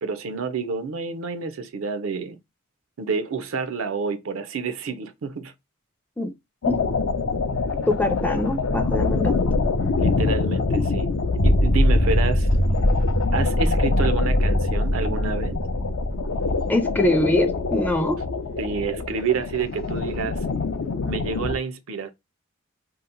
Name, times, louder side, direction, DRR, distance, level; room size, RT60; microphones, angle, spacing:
voice 1, 0.0-2.4 3.0-5.5 10.0-11.1 11.4-12.5 13.3-15.6 18.6-20.4 21.0-22.1, right 5 dB, 75° right, 0.5 m, -28 dB
sound 1, 6.6-21.5, left 4 dB, 70° left, 0.5 m, -26 dB
voice 2, 7.9-9.4 16.7-18.2, left 1 dB, 10° left, 0.4 m, -23 dB
sound 2, 11.4-16.6, equal, 50° left, 0.8 m, -22 dB
2.8 x 2.0 x 3.7 m
head